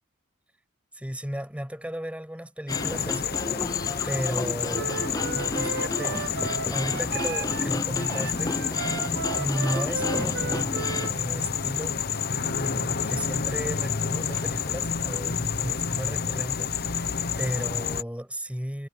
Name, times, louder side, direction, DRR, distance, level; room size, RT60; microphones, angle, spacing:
voice 1, 0.9-3.8 4.0-4.9 5.3-8.8 9.3-12.0 12.4-17.1 17.4-18.9, equal, 5° right, 7.6 m, -34 dB
sound 1, 2.7-18.0, left 6 dB, 45° left, 1.1 m, -29 dB
sound 2, 2.7-11.1, left 2 dB, 15° left, 0.5 m, -33 dB
Wind instrument woodwind instrument, 4.7-7.7 8.0-11.2, right 6 dB, 55° right, 0.6 m, -35 dB
head